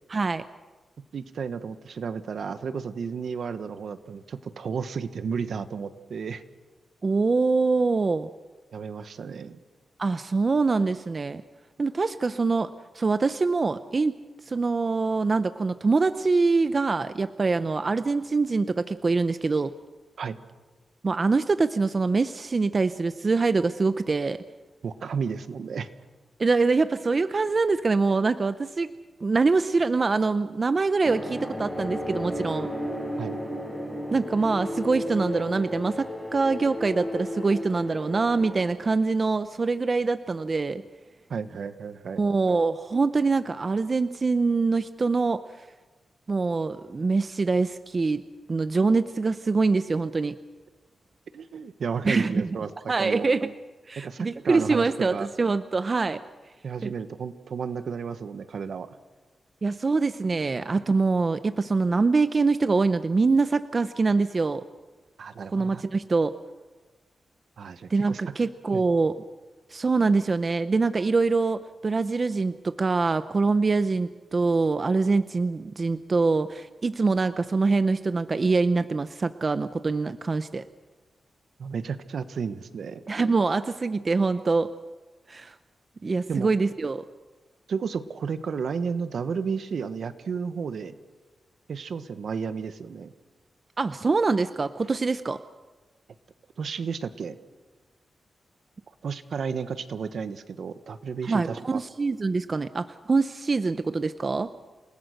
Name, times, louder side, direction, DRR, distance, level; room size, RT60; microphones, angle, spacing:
voice 1, 0.1-0.4 7.0-8.3 10.0-11.4 11.8-14.2 14.5-19.7 21.0-24.4 26.4-28.9 29.2-32.7 34.1-40.8 42.2-45.4 46.3-48.2 48.5-50.4 52.0-52.5 52.9-53.5 53.9-56.2 56.8-56.9 59.6-64.6 65.4-66.4 67.9-69.2 69.7-80.6 83.1-84.7 85.3-85.5 86.0-87.0 93.8-95.4 101.3-104.5, right 4 dB, 35° right, 12 dB, 0.7 m, -24 dB
voice 2, 1.1-6.4 8.7-9.6 20.2-20.4 24.8-25.9 33.2-33.4 41.3-42.2 51.3-52.7 53.0-53.3 54.0-55.3 56.6-58.9 65.2-65.8 67.6-68.2 68.7-68.8 81.6-83.0 86.3-86.5 87.7-91.0 91.7-93.1 96.6-97.4 99.0-101.8, right 6 dB, 70° right, 11 dB, 1.3 m, -32 dB
sound 1, 31.0-38.7, left 1 dB, ahead, 4.9 m, -34 dB
29.0 x 19.5 x 6.5 m, 1.2 s
wide cardioid pair, 125°, 0 cm